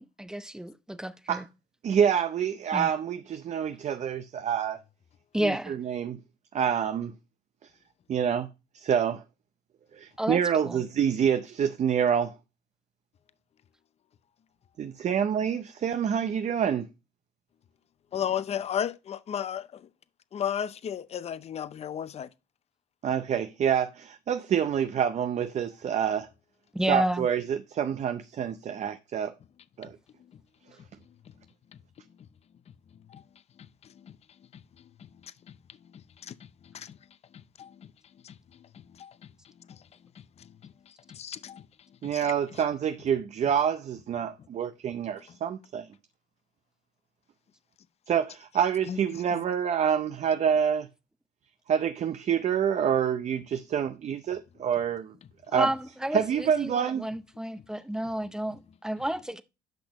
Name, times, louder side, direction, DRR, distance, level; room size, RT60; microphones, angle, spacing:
voice 1, 0.0-1.4 2.7-2.9 5.3-5.8 10.2-10.4 10.6-10.8 26.7-27.3 55.5-59.4, right 1 dB, 5° right, 0.6 m, -31 dB
voice 2, 1.8-4.8 5.4-6.2 6.5-7.1 8.1-8.5 8.7-9.2 10.0-12.3 14.8-16.9 23.0-26.3 26.9-29.3 29.8-30.0 42.0-45.9 48.1-50.9 51.7-55.1 55.5-55.7 56.1-57.0, right 8 dB, 45° right, 0.6 m, -27 dB
voice 3, 18.1-19.7 20.3-22.3 33.1-33.2 36.3-36.4 36.7-36.9 37.6-37.7 38.2-38.3 39.0-39.1 41.1-41.6 42.1-42.2 48.9-49.0 49.3-49.4, left 9 dB, 40° left, 0.6 m, -33 dB
10.5 x 5.9 x 3.0 m
cardioid pair, 110°, 17 cm